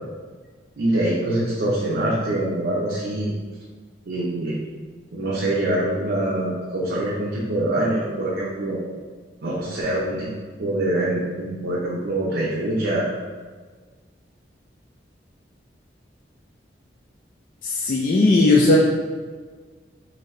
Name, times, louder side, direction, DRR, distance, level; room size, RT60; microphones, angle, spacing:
voice 1, 0.8-3.3 4.1-4.5 5.1-8.9 9.4-10.3 10.6-13.1, right 1 dB, 75° right, -6 dB, 0.6 m, -24 dB
voice 2, 17.6-18.8, left 2 dB, 45° left, -3 dB, 0.3 m, -17 dB
3.9 x 2.7 x 3.1 m, 1.5 s
head